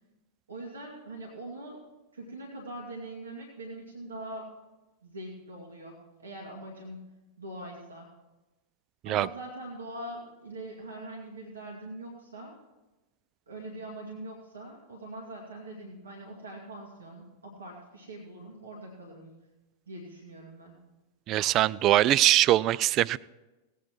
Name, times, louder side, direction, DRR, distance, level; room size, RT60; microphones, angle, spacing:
voice 1, 0.5-1.8 2.1-4.5 5.0-7.0 7.4-8.1 9.0-12.6 13.5-19.3 19.9-20.8, right 1 dB, 70° right, -1 dB, 2.0 m, -42 dB
voice 2, 21.3-23.2, right 14 dB, 35° right, 21 dB, 0.3 m, -22 dB
18.0 x 8.4 x 4.6 m, 1.1 s
figure-of-eight pair, 90°, 0 cm